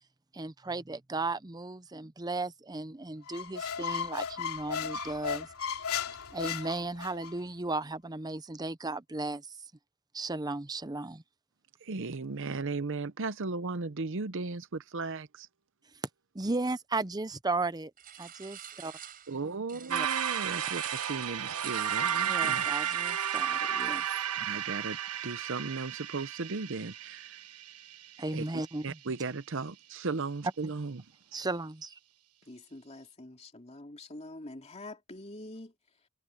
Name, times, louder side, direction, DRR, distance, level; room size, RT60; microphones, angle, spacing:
voice 1, 0.3-5.8 6.3-9.6 10.1-11.2 16.3-17.9 18.2-18.9 19.9-20.1 22.3-24.0 28.2-29.0 31.3-32.0, right 2 dB, 20° right, 0.7 m, -35 dB
Squeak, 3.3-7.3, left 7 dB, 75° left, 3.2 m, -35 dB
voice 2, 11.8-15.5 19.3-22.7 24.4-25.0 25.2-27.4 28.3-28.4 28.8-31.0, right 3 dB, 60° right, 0.8 m, -36 dB
sound 1, 18.0-19.4 19.7-24.3, right 10 dB, 40° right, 5.3 m, -45 dB
sound 2, 19.9-28.4, right 9 dB, 90° right, 1.3 m, -33 dB
voice 3, 32.5-36.1, left 2 dB, 30° left, 2.8 m, -46 dB
head